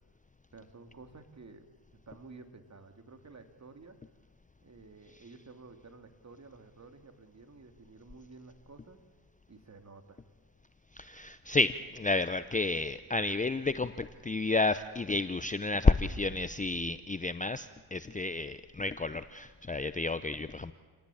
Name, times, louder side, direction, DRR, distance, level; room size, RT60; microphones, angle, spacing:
voice 1, 0.5-1.7 2.1-4.0 4.6-9.0 9.5-10.2, right 3 dB, 35° right, 7 dB, 2.9 m, -52 dB
voice 2, 11.0-20.7, left 3 dB, 15° left, 12 dB, 0.7 m, -30 dB
28.0 x 18.0 x 8.6 m, 1.5 s
supercardioid pair, 70°, 49 cm